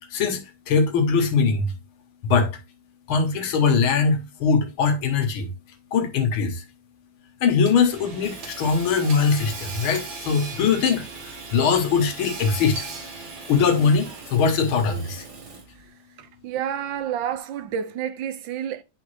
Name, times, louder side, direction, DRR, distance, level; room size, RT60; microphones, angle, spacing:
voice 1, 0.7-1.7 2.2-2.5 3.1-5.5 5.9-6.6 7.4-12.8 13.5-15.2, left 5 dB, 80° left, 1.9 m, -21 dB
Hammer / Sawing, 7.7-15.8, right 3 dB, 55° right, 1.9 m, -38 dB
voice 2, 16.2-18.8, right 9 dB, 75° right, 1.3 m, -29 dB
9.8 x 3.5 x 3.1 m
omnidirectional pair, 2.3 m